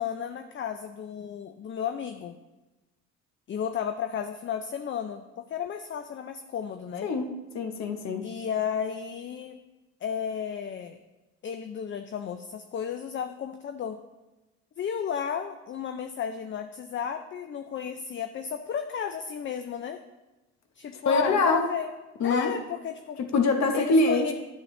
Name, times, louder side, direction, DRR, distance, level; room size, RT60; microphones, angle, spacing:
voice 1, 0.0-2.4 3.5-7.1 8.2-9.6 10.0-11.0 11.4-14.0 14.8-20.0 20.8-21.9 22.2-23.2 23.7-24.3, left 8 dB, 40° left, 8 dB, 0.5 m, -33 dB
voice 2, 7.5-8.3 21.0-21.6 22.2-22.5 23.3-24.3, left 3 dB, 60° left, 6 dB, 1.1 m, -24 dB
9.9 x 7.4 x 3.2 m, 1.1 s
cardioid pair, 90°, 30 cm